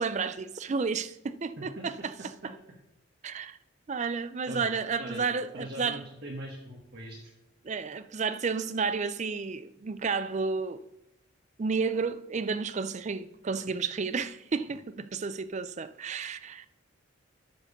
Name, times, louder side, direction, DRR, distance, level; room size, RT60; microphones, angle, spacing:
voice 1, 0.0-2.1 3.2-3.6 3.9-6.0 7.6-10.8 11.6-16.7, right 5 dB, 35° right, 0.4 m, -31 dB
voice 2, 5.5-7.3, right 1 dB, 50° right, 1.3 m, -41 dB
11.5 x 4.7 x 6.6 m
head